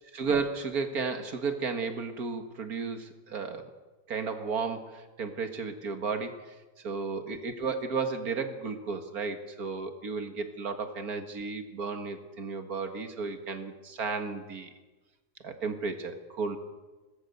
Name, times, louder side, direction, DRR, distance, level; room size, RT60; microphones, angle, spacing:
voice 1, 0.1-3.7 4.1-6.5 6.8-14.7 15.4-16.6, right 4 dB, 65° right, 7 dB, 2.2 m, -33 dB
22.0 x 19.0 x 6.9 m, 1.2 s
omnidirectional pair, 1.7 m